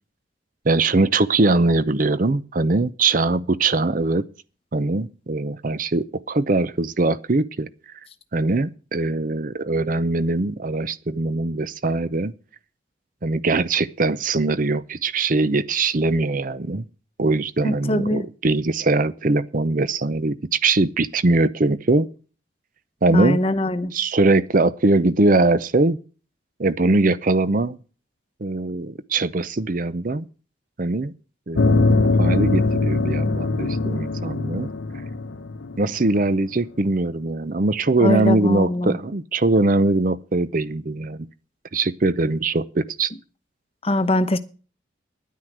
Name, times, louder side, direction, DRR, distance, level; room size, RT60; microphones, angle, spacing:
voice 1, 0.6-4.2 4.7-7.7 8.3-12.3 13.2-16.8 17.2-22.1 23.0-23.4 23.9-26.0 26.6-27.8 28.4-30.3 30.8-31.1 31.5-34.7 35.8-41.3 41.7-43.1, right 2 dB, 45° right, 0.6 m, -21 dB
voice 2, 17.6-18.3 23.1-23.9 38.0-39.0 43.8-44.4, left 1 dB, 30° left, 0.9 m, -22 dB
sound 1, 31.6-36.4, left 3 dB, 70° left, 0.9 m, -21 dB
10.5 x 9.5 x 7.9 m
head